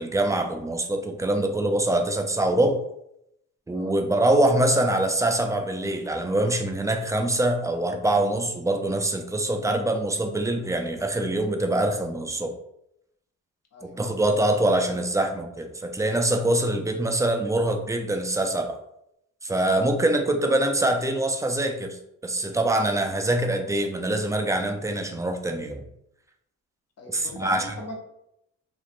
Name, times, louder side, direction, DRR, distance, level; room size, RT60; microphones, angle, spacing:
voice 1, 0.0-2.8 3.7-12.5 13.8-18.8 19.4-25.8 27.1-27.7, right 1 dB, 10° right, 4 dB, 0.3 m, -24 dB
voice 2, 13.7-14.2 27.0-28.0, left 1 dB, 55° left, 1 dB, 0.9 m, -40 dB
3.2 x 2.4 x 2.5 m, 0.79 s
cardioid pair, 90°, 30 cm